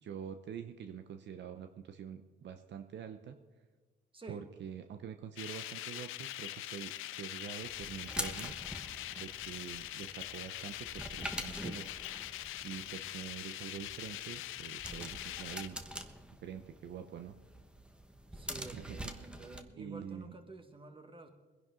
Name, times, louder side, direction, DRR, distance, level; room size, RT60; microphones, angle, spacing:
voice 1, 0.0-3.4 4.3-8.5 9.1-11.9 12.6-15.8 16.4-17.4 18.5-19.1 19.8-20.3, right 8 dB, 65° right, 7 dB, 0.8 m, -46 dB
voice 2, 4.1-4.5 18.3-21.3, right 2 dB, 25° right, 7 dB, 1.7 m, -50 dB
Radiator - Steam, 5.4-15.7, left 14 dB, 85° left, 0.6 m, -43 dB
sound 1, 7.6-19.6, equal, 5° right, 1.1 m, -46 dB
21.5 x 10.5 x 3.8 m, 1.4 s
cardioid pair, 90°, 20 cm